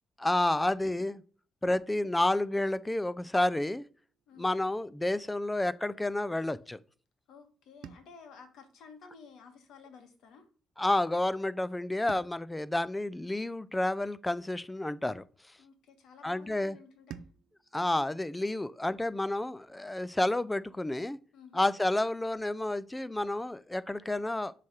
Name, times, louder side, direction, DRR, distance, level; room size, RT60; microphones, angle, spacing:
voice 1, 0.2-1.2 1.6-3.8 4.4-6.8 10.8-15.2 16.2-16.8 17.7-21.2 21.5-24.5, left 1 dB, 10° left, 0.4 m, -30 dB
voice 2, 7.3-10.5 15.6-17.3 21.3-21.6, left 5 dB, 80° left, 1.4 m, -53 dB
sound 1, 7.8-10.2 12.1-14.6 17.1-19.6, right 9 dB, 80° right, 0.4 m, -55 dB
7.1 x 3.3 x 4.3 m
cardioid pair, 90°, 0 cm